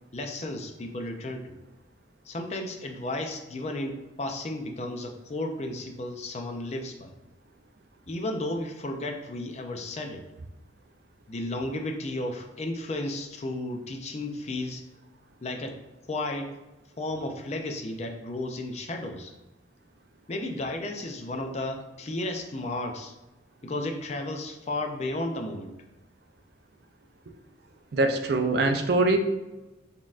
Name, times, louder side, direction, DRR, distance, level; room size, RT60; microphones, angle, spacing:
voice 1, 0.1-1.6 2.3-7.1 8.1-10.2 11.3-14.8 15.4-15.8 16.1-16.5 17.0-19.3 20.3-23.1 23.6-25.7, left 1 dB, 35° left, 4 dB, 0.4 m, -33 dB
voice 2, 27.9-29.2, right 2 dB, 55° right, 5 dB, 0.4 m, -23 dB
4.1 x 3.6 x 2.4 m, 1.0 s
head